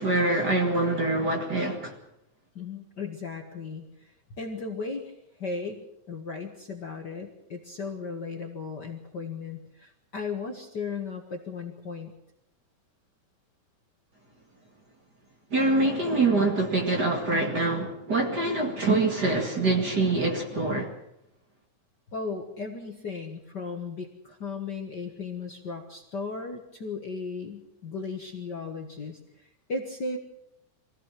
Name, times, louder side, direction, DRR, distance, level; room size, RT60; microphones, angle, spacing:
voice 1, 0.0-1.9 15.5-20.9, right 2 dB, 35° right, 2.4 m, -25 dB
voice 2, 2.6-4.1 4.4-5.1 5.4-12.1 22.1-30.2, left 4 dB, 45° left, 1.7 m, -36 dB
23.0 x 16.0 x 7.6 m
omnidirectional pair, 3.4 m